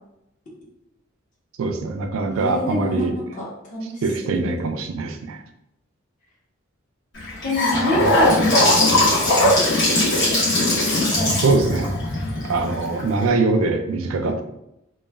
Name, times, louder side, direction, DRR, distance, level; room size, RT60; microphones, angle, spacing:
voice 1, 1.6-3.1 4.0-5.4 11.4-12.0 12.5-14.4, right 3 dB, 80° right, 6 dB, 0.3 m, -22 dB
voice 2, 2.4-3.1 3.4-4.5 7.4-9.3 11.0-11.3, left 1 dB, 40° left, -4 dB, 0.7 m, -27 dB
Gurgling / Sink (filling or washing) / Bathtub (filling or washing), 7.1-13.2, left 1 dB, 60° left, 1.0 m, -19 dB
3.0 x 2.2 x 2.3 m, 0.84 s
head